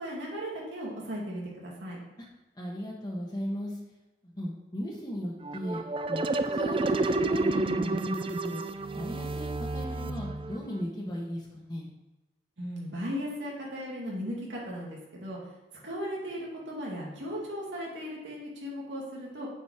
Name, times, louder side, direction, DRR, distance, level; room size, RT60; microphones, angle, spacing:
voice 1, 0.0-2.0 12.6-15.4 15.8-19.5, equal, 85° right, -4 dB, 2.3 m, -37 dB
voice 2, 2.5-3.8 4.2-5.8 6.1-6.2 6.5-8.6 8.9-11.9, equal, 20° left, -4 dB, 1.2 m, -36 dB
sound 1, 5.4-10.8, right 2 dB, 30° right, 0.4 m, -30 dB
8.4 x 5.2 x 4.9 m, 1.0 s
head